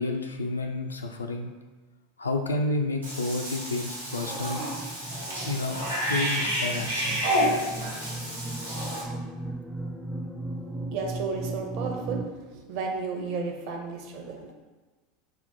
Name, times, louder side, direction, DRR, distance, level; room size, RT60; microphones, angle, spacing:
voice 1, 0.0-1.5 2.2-4.6 5.5-7.2, left 2 dB, 80° left, 3 dB, 0.4 m, -30 dB
sound 1, 2.7-12.2, right 2 dB, 5° right, 0.4 m, -37 dB
Cat / Bathtub (filling or washing), 3.0-9.0, equal, 90° right, 1.1 m, -30 dB
voice 2, 10.6-14.5, right 4 dB, 50° right, 3 dB, 0.7 m, -33 dB
5.5 x 2.1 x 4.3 m, 1.3 s
figure-of-eight pair, 80°, 0 cm